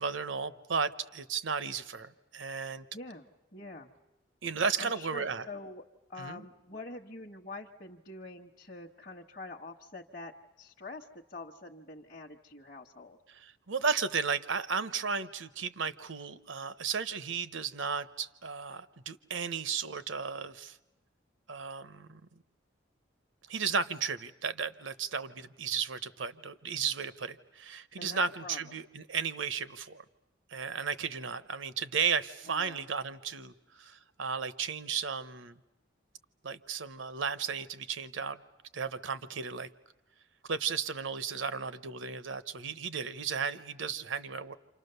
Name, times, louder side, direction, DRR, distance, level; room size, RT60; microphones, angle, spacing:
voice 1, 0.0-2.9 4.4-5.4 6.2-6.4 13.3-20.8 21.5-22.2 23.5-30.0 30.5-35.6 36.4-38.4 38.7-39.7 40.5-44.5, right 5 dB, 75° right, 14 dB, 0.9 m, -34 dB
voice 2, 2.9-4.0 4.8-5.8 6.1-13.2 28.0-28.6 32.5-32.8, left 2 dB, 45° left, -1 dB, 1.0 m, -46 dB
29.5 x 26.5 x 6.8 m, 0.95 s
head